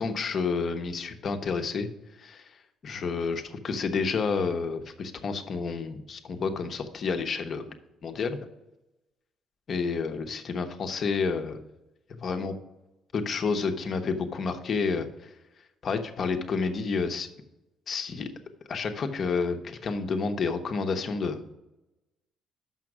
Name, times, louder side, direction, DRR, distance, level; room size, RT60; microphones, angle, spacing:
voice 1, 0.0-1.9 2.2-2.6 2.8-7.7 8.0-8.4 9.7-11.6 12.2-12.5 13.1-15.3 15.8-17.3 17.9-18.3 18.7-21.5, left 4 dB, 55° left, 7 dB, 0.9 m, -30 dB
6.0 x 5.8 x 5.9 m, 0.99 s
supercardioid pair, 75°, 0 cm